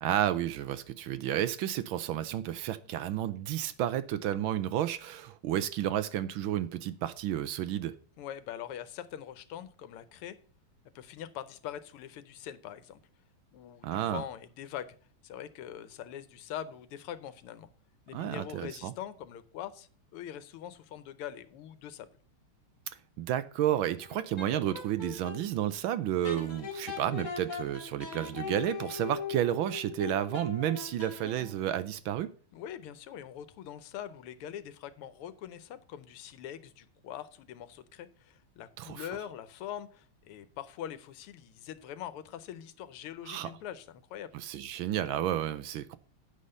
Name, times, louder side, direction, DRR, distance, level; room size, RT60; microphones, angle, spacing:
voice 1, 0.0-7.9 13.8-14.2 18.1-18.9 23.2-32.3 38.8-39.1 43.3-43.5 44.3-46.0, right 11 dB, 75° right, 1.3 m, -31 dB
voice 2, 8.2-10.4 10.9-13.0 13.5-15.0 15.2-17.7 18.1-22.1 32.5-44.3, left 10 dB, 85° left, 1.7 m, -43 dB
sound 1, 24.0-25.4 26.2-31.7, left 5 dB, 35° left, 1.9 m, -40 dB
8.3 x 5.6 x 6.5 m
omnidirectional pair, 2.4 m